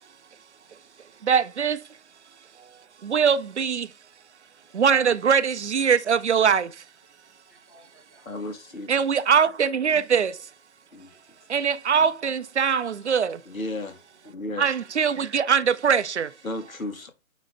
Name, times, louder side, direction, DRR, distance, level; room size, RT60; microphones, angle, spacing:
voice 1, 1.3-1.8 3.0-3.9 4.7-6.7 8.9-10.3 11.5-13.4 14.6-16.3, right 7 dB, 55° right, 0.6 m, -22 dB
voice 2, 7.5-8.8 11.1-11.5 14.2-14.3, right 1 dB, 10° left, 0.5 m, -59 dB
voice 3, 8.2-9.0 10.9-11.1 13.4-14.0 14.2-14.7 16.4-17.1, left 2 dB, 70° left, 1.6 m, -34 dB
9.3 x 3.1 x 3.4 m
figure-of-eight pair, 135°, 43 cm